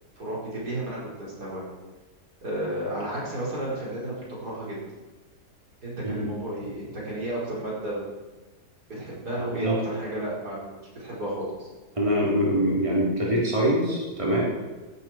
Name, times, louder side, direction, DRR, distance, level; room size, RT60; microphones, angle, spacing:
voice 1, 0.2-1.7 2.4-4.8 5.8-8.1 8.9-10.6 11.0-11.7, right 1 dB, 65° right, -6 dB, 5.4 m, -32 dB
voice 2, 12.0-14.4, equal, 20° right, -5 dB, 3.8 m, -24 dB
16.0 x 12.5 x 4.6 m, 1.2 s
omnidirectional pair, 1.8 m